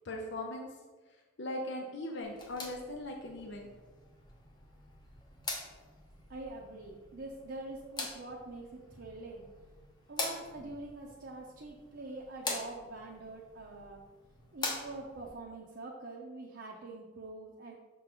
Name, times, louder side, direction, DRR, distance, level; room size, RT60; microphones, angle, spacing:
voice 1, 0.0-0.7 1.4-3.7, left 1 dB, 60° left, 0 dB, 0.7 m, -39 dB
sound 1, 2.2-15.3, left 2 dB, 20° left, 0.8 m, -44 dB
voice 2, 6.3-9.5 10.1-14.0 14.5-17.7, right 2 dB, 55° right, -2 dB, 0.7 m, -45 dB
6.3 x 3.8 x 4.4 m, 1.3 s
head